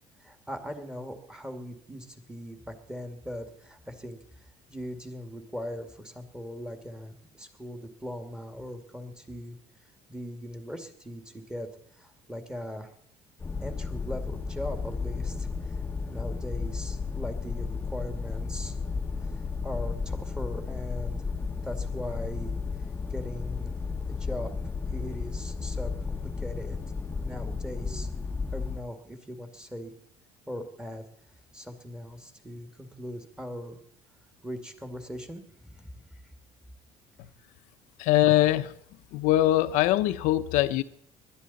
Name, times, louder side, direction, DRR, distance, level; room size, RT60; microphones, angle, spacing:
voice 1, 0.2-4.2 4.7-9.6 10.1-12.9 13.6-15.8 16.1-18.8 19.2-21.2 21.6-22.5 23.1-23.7 24.1-24.5 24.9-26.8 27.2-28.1 28.5-29.9 30.5-31.0 31.5-33.8 34.4-36.0, equal, 5° right, 2.2 m, -40 dB
sound 1, 13.4-28.8, left 4 dB, 15° left, 1.0 m, -33 dB
voice 2, 38.0-38.7 39.1-40.8, left 15 dB, 80° left, 0.8 m, -22 dB
20.5 x 12.0 x 4.2 m
cardioid pair, 105°, 13 cm